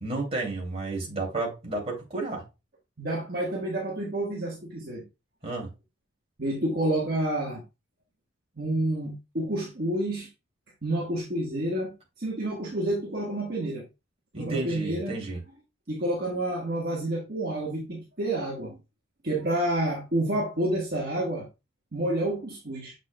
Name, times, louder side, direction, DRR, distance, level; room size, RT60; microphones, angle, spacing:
voice 1, 0.0-2.4 5.4-5.7 14.3-15.4, right 2 dB, 30° right, 2.6 m, -32 dB
voice 2, 3.0-5.0 6.4-7.6 8.6-10.3 10.8-13.8 14.3-15.1 15.9-18.8 19.2-21.5 21.9-22.9, right 1 dB, 45° right, 1.4 m, -29 dB
7.3 x 6.0 x 2.2 m
head